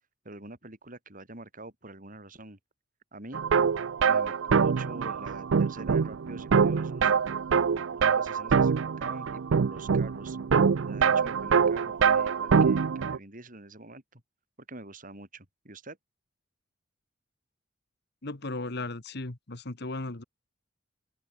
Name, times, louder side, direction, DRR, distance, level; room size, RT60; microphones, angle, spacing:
voice 1, 0.2-2.6 3.1-3.4 4.1-7.1 7.7-10.4 10.7-14.2 14.7-16.0, right 2 dB, 45° right, 6.5 m, -45 dB
sound 1, 3.3-13.2, right 6 dB, 70° right, 0.5 m, -25 dB
voice 2, 18.2-20.2, left 2 dB, 55° left, 1.6 m, -36 dB
open air
head